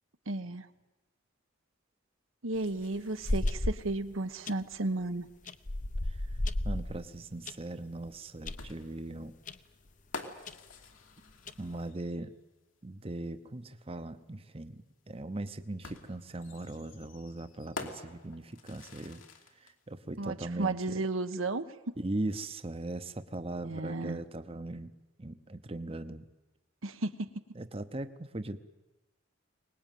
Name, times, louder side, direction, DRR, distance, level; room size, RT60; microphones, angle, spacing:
voice 1, 0.3-0.7 2.4-5.3 20.2-21.7 23.6-24.2 26.8-27.4, right 2 dB, 85° right, 8 dB, 1.2 m, -33 dB
sound 1, 2.5-4.0 4.5-4.7 5.5-7.6 8.0-8.1 8.4-8.7 9.5-9.6 9.9-10.0 10.5-10.6 11.3-11.8, left 1 dB, 40° left, 0.8 m, -33 dB
voice 2, 6.0-6.4 6.6-9.3 11.6-12.3 12.8-19.2 19.6-21.0 22.0-24.9 25.2-26.3 27.5-28.6, right 2 dB, 30° right, 10 dB, 0.8 m, -39 dB
sound 2, 8.6-12.2 13.7-13.8 15.8-19.7, left 3 dB, 80° left, 2.8 m, -47 dB
23.5 x 19.5 x 9.3 m, 1.1 s
head